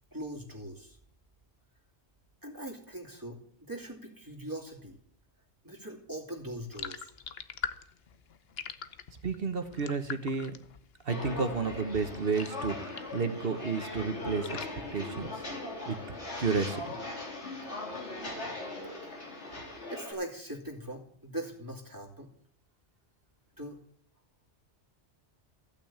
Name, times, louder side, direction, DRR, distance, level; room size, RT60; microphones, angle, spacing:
voice 1, 0.1-1.0 2.4-5.0 5.6-7.1 19.9-22.3 23.6-23.8, right 1 dB, 15° right, -1 dB, 2.7 m, -41 dB
sound 1, 6.7-13.3 13.6-15.7, left 7 dB, 65° left, 1.0 m, -44 dB
voice 2, 9.2-10.5 11.0-14.6 14.9-15.4 15.9-16.8, right 4 dB, 55° right, 8 dB, 1.4 m, -32 dB
Walk footsteps, 11.1-20.1, left 2 dB, 85° left, 3.5 m, -39 dB
15.0 x 6.2 x 8.7 m, 0.63 s
omnidirectional pair, 1.2 m